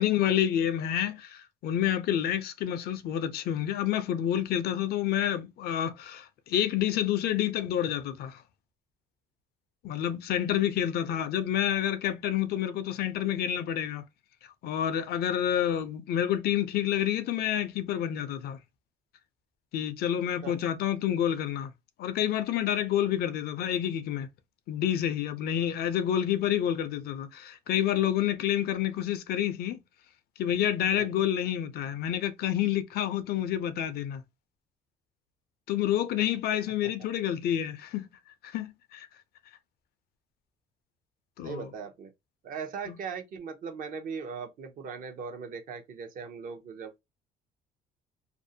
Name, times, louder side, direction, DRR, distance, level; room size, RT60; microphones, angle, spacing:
voice 1, 0.0-8.4 9.8-14.0 14.6-18.6 19.7-21.7 22.0-24.3 24.7-29.8 30.4-34.2 35.7-38.1 38.5-39.1 41.4-41.7 42.9-43.0, left 10 dB, 65° left, 0.4 m, -28 dB
voice 2, 41.4-42.1 42.4-47.0, right 6 dB, 55° right, 0.7 m, -39 dB
2.5 x 2.1 x 2.6 m
cardioid pair, 110°, 17 cm